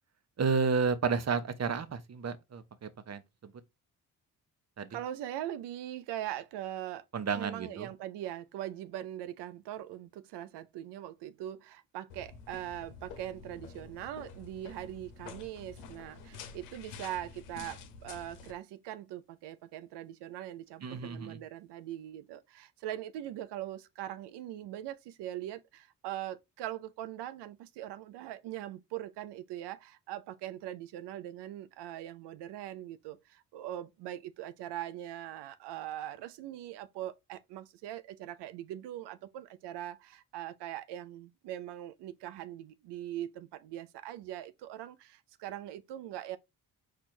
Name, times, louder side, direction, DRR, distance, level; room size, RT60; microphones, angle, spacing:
voice 1, 0.4-3.5 4.8-4.9 7.1-7.9 20.8-21.4, right 5 dB, 40° right, 0.8 m, -31 dB
voice 2, 4.9-7.0 7.3-46.4, right 12 dB, 75° right, 0.5 m, -41 dB
sound 1, 12.1-18.5, left 5 dB, 90° left, 0.7 m, -49 dB
4.5 x 2.5 x 4.2 m
supercardioid pair, 45°, 42 cm